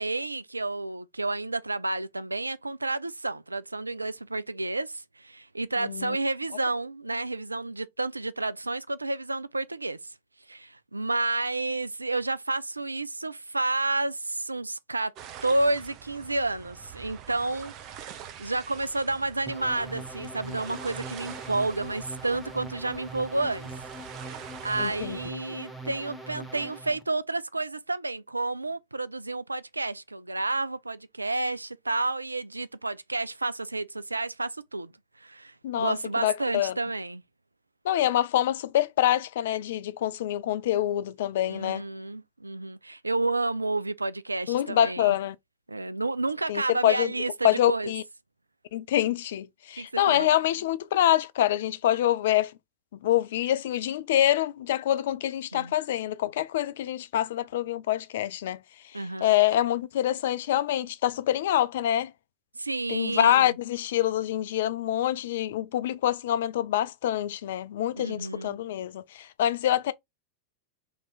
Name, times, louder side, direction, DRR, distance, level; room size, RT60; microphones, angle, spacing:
voice 1, 0.0-10.1 10.5-15.1 15.4-23.7 24.3-34.9 35.2-37.2 41.5-45.2 45.7-47.9 49.8-50.3 55.5-55.7 58.9-59.3 62.5-63.6 68.0-68.6, right 2 dB, 80° right, 0.3 m, -30 dB
voice 2, 5.8-6.2 24.8-25.2 35.6-35.9 36.2-36.7 37.8-41.8 44.5-45.4 46.5-47.1 47.4-48.0 48.7-52.5 53.0-58.6 59.2-62.1 62.9-69.9, left 12 dB, 55° left, 0.4 m, -26 dB
sound 1, 15.2-25.3, right 9 dB, 40° right, 0.7 m, -45 dB
sound 2, 19.5-27.0, right 2 dB, ahead, 0.9 m, -42 dB
3.2 x 2.9 x 4.0 m
figure-of-eight pair, 90°, 0 cm